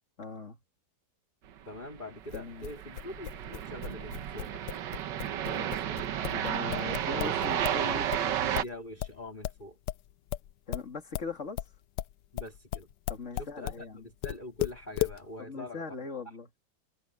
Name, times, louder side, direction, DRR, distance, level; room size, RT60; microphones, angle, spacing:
voice 1, 0.2-0.6 2.3-2.7 6.2-8.6 10.7-11.6 13.1-14.1 15.4-16.5, left 4 dB, 40° left, 2.9 m, -40 dB
voice 2, 1.7-4.7 5.4-6.1 8.4-9.8 12.3-12.9 13.3-15.8, left 1 dB, 25° left, 3.7 m, -44 dB
sound 1, 2.0-8.6, right 10 dB, 90° right, 1.6 m, -32 dB
sound 2, 2.3-7.8 8.1-13.8 14.2-15.2, left 14 dB, 80° left, 1.3 m, -35 dB
omnidirectional pair, 1.9 m